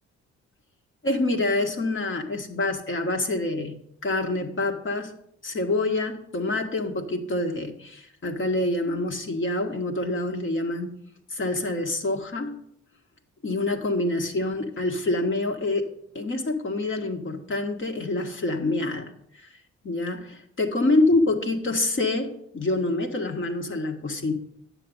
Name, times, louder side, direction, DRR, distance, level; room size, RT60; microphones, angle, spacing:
voice 1, 1.0-5.1 5.4-11.0 11.3-12.6 13.4-15.9 16.1-19.1 19.4-19.5 19.8-24.3, left 2 dB, 40° left, 5 dB, 1.8 m, -26 dB
10.0 x 7.8 x 5.5 m, 0.71 s
cardioid pair, 90°, 30 cm